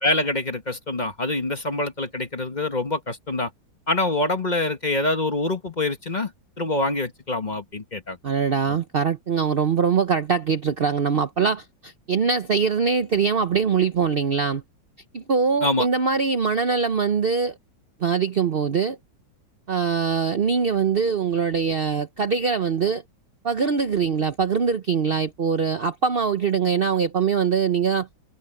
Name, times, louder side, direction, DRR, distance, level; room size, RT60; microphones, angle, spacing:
voice 1, 0.0-3.5 3.9-6.3 6.6-8.2 8.7-8.8 15.6-15.9, left 2 dB, 25° left, 1.3 m, -25 dB
voice 2, 8.2-14.6 15.1-17.6 18.0-19.0 19.7-23.0 23.4-28.1, right 6 dB, 70° right, 0.5 m, -22 dB
omnidirectional pair, 2.1 m